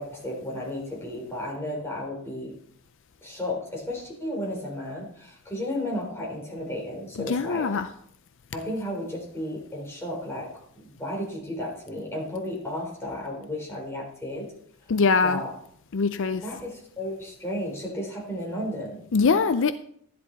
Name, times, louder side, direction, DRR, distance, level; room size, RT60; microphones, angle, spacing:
voice 1, 0.0-2.5 3.2-7.7 8.5-10.5 10.8-14.5 15.2-15.5 16.4-19.0, left 1 dB, 10° left, -3 dB, 4.0 m, -33 dB
voice 2, 7.2-7.9 14.9-15.4 15.9-16.4 19.1-19.7, left 4 dB, 60° left, 11 dB, 0.5 m, -22 dB
12.5 x 10.5 x 4.1 m, 0.67 s
head